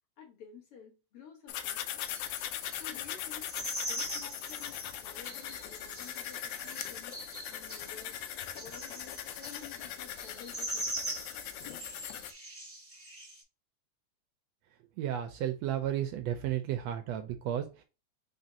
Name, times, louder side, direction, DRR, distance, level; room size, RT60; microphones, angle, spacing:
voice 1, 0.2-2.0 2.8-3.5 3.8-7.2 7.5-8.2 8.5-10.9, left 7 dB, 55° left, 2.3 m, -52 dB
sound 1, 1.5-12.3, left 11 dB, 90° left, 2.0 m, -40 dB
sound 2, 2.1-13.4, right 1 dB, 5° right, 1.1 m, -43 dB
voice 2, 15.0-17.8, right 11 dB, 80° right, 1.6 m, -33 dB
5.0 x 3.6 x 2.7 m
omnidirectional pair, 3.4 m